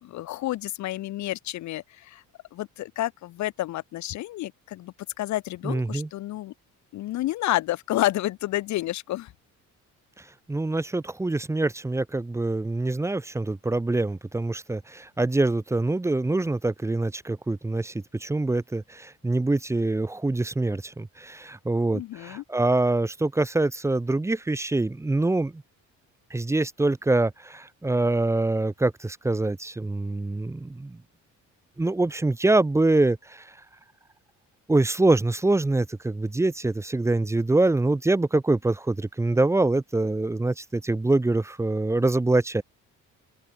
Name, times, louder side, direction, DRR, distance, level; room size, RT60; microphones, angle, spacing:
voice 1, 0.0-2.2 2.5-6.5 6.9-9.3 21.9-22.4, left 15 dB, 60° left, 1.5 m, -30 dB
voice 2, 5.6-6.1 10.5-25.6 26.3-31.0 31.8-33.5 34.7-42.6, right 2 dB, 10° right, 2.0 m, -25 dB
open air
cardioid pair, 180°, 31 cm